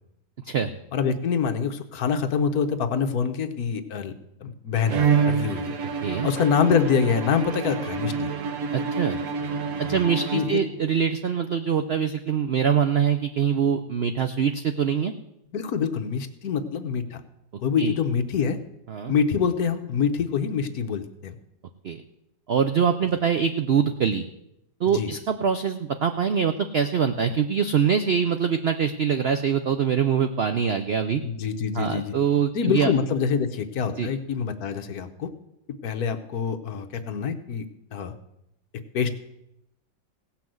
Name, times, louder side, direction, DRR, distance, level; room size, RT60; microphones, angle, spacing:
voice 1, 0.9-4.1 4.4-5.7 6.2-8.3 9.9-10.0 10.3-10.6 15.5-17.2 17.6-18.6 19.1-21.3 24.9-25.1 31.2-32.1 32.5-35.3 35.8-37.6 37.9-38.1 38.9-39.1, left 6 dB, 65° left, 7 dB, 1.3 m, -25 dB
Bowed string instrument, 4.9-10.9, right 5 dB, 60° right, 1.3 m, -27 dB
voice 2, 8.7-9.2 9.8-15.1 17.8-17.9 18.9-19.1 21.8-22.0 22.5-24.2 24.8-31.2 31.7-32.9 34.0-34.1, right 7 dB, 80° right, 8 dB, 0.5 m, -24 dB
17.0 x 5.9 x 7.7 m, 0.83 s
omnidirectional pair, 1.8 m